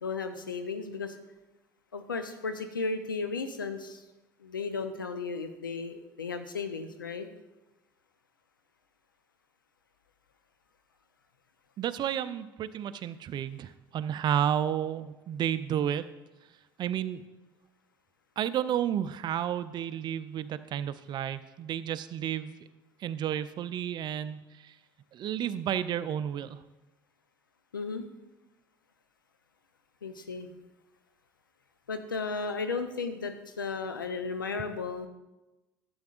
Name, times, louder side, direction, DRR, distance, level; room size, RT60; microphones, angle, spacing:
voice 1, 0.0-1.2 1.9-4.0 4.4-7.3 27.7-28.1 30.0-30.5 31.9-35.1, left 4 dB, 90° left, 8 dB, 0.7 m, -34 dB
voice 2, 11.8-16.0 16.8-17.3 18.4-22.6 23.0-24.7 25.1-26.6, right 10 dB, 45° right, 13 dB, 0.5 m, -31 dB
12.5 x 7.9 x 2.5 m, 1.1 s
hypercardioid pair, 65°, 11 cm